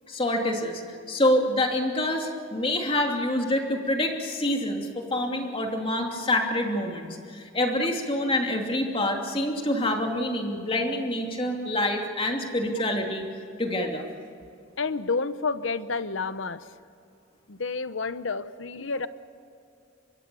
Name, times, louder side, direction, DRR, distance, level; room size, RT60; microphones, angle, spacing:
voice 1, 0.1-0.8 1.1-13.2 13.6-14.1, left 1 dB, 25° left, 2 dB, 2.8 m, -26 dB
voice 2, 14.8-16.6 17.5-19.1, left 4 dB, 70° left, 13 dB, 0.9 m, -30 dB
25.0 x 22.0 x 7.0 m, 2.6 s
head